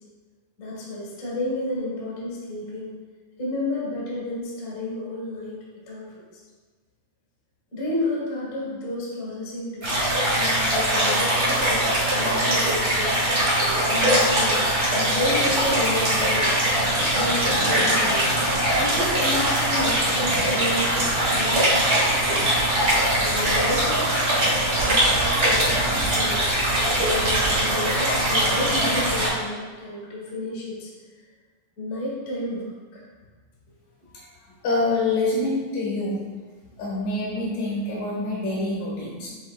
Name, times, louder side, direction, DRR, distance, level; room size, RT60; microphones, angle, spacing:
voice 1, 0.6-2.9 3.4-5.5 5.9-6.0 6.3-6.4 7.7-9.9 10.3-13.4 13.9-14.6 14.9-16.6 17.1-18.2 18.8-21.9 23.1-24.1 24.8-25.7 26.1-26.6 27.1-30.9 31.8-33.0 34.0-34.1, left 1 dB, 50° left, -6 dB, 1.1 m, -31 dB
sound 1, 9.8-29.3, right 1 dB, 40° right, 1.0 m, -21 dB
voice 2, 34.6-36.2 36.8-39.3, left 2 dB, 75° left, -5 dB, 2.9 m, -26 dB
7.2 x 3.0 x 2.4 m, 1.4 s
omnidirectional pair, 3.8 m